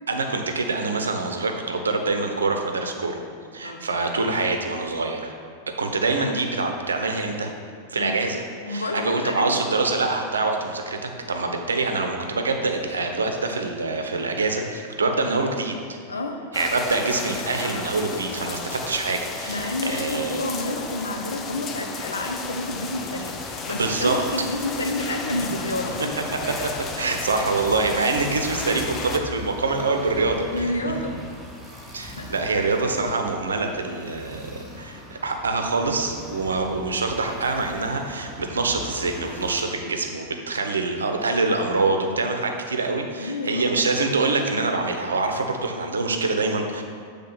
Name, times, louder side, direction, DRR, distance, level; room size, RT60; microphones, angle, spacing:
voice 1, 0.1-3.2 3.5-5.3 5.8-7.5 7.9-15.8 16.5-20.4 23.7-24.2 26.5-26.7 27.0-30.7 31.9-46.8, right 3 dB, 70° right, 4 dB, 0.7 m, -25 dB
voice 2, 8.6-9.6 16.1-16.4 19.5-26.2 30.5-31.2 32.1-32.7 43.2-43.8, left 1 dB, 75° left, 4 dB, 0.7 m, -29 dB
sound 1, 16.5-29.2, left 4 dB, 25° left, 0.6 m, -33 dB
sound 2, 22.9-39.6, left 1 dB, ahead, 1.1 m, -41 dB
7.5 x 3.6 x 5.6 m, 2.2 s
figure-of-eight pair, 90°, 0 cm